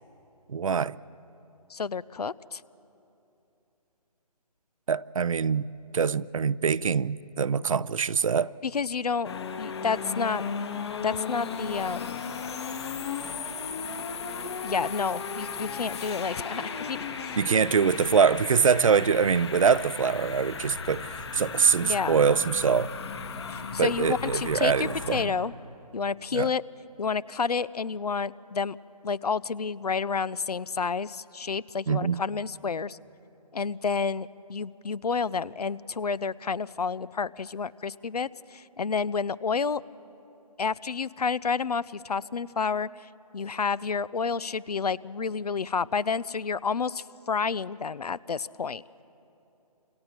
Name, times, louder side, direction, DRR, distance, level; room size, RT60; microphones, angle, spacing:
voice 1, 0.5-1.0 4.9-5.7 5.9-8.5 17.4-22.9 23.8-25.3 26.3-26.5 31.9-32.2, right 6 dB, 55° right, 0.5 m, -24 dB
voice 2, 1.7-2.6 8.6-9.3 9.6-10.4 11.0-12.2 14.6-17.4 21.8-22.2 23.5-25.5 25.9-26.6 27.0-28.8 29.0-33.0 33.5-39.8 40.6-48.8, left 5 dB, 70° left, 0.6 m, -30 dB
sound 1, 9.2-25.2, left 5 dB, 40° left, 1.8 m, -35 dB
30.0 x 26.5 x 4.4 m
figure-of-eight pair, 155°, 20 cm